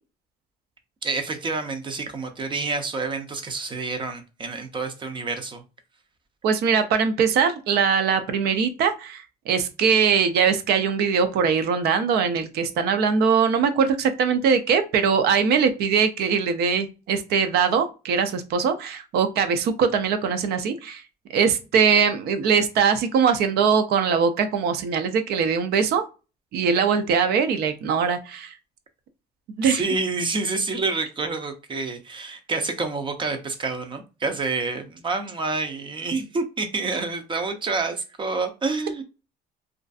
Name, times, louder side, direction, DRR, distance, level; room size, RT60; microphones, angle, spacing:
voice 1, 1.0-5.6 29.6-39.0, right 3 dB, 30° right, 0.5 m, -28 dB
voice 2, 6.4-21.0 21.3-26.0 26.5-28.5 29.6-29.8, right 6 dB, 75° right, 0.5 m, -21 dB
2.5 x 2.3 x 2.4 m
cardioid pair, 110°, 17 cm